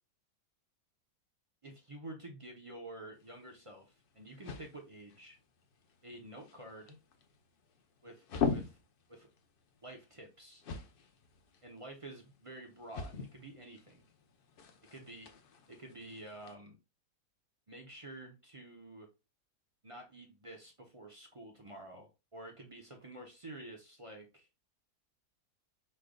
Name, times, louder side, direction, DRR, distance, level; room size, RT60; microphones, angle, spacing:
voice 1, 1.6-5.4 6.0-7.0 8.0-8.8 9.1-9.3 9.8-10.6 11.6-14.0 14.9-15.3 15.7-16.8 17.7-19.1 19.8-24.5, right 1 dB, 50° right, 2 dB, 0.3 m, -50 dB
sound 1, 3.1-16.5, left 5 dB, 70° left, 0.5 m, -43 dB
5.0 x 4.4 x 2.2 m, 0.27 s
omnidirectional pair, 1.8 m